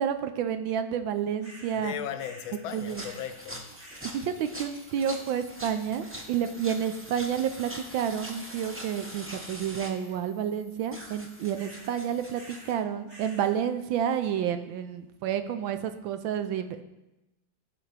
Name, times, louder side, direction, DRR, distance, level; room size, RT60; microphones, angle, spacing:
voice 1, 0.0-1.9 2.7-3.1 4.0-16.8, right 8 dB, 80° right, 1.4 m, -30 dB
sound 1, 1.4-1.8 2.2-2.6 2.9-3.4 3.7-4.2 6.2-6.7 7.0-7.4 7.8-8.2 8.5-9.0 11.5-12.0 12.3-12.8 13.1-13.5, right 1 dB, 30° right, 3.6 m, -51 dB
voice 2, 1.8-3.7 5.8-5.9, left 10 dB, 85° left, 1.5 m, -37 dB
sound 2, 2.7-12.7, equal, 15° right, 0.5 m, -44 dB
16.0 x 5.6 x 3.3 m
omnidirectional pair, 2.2 m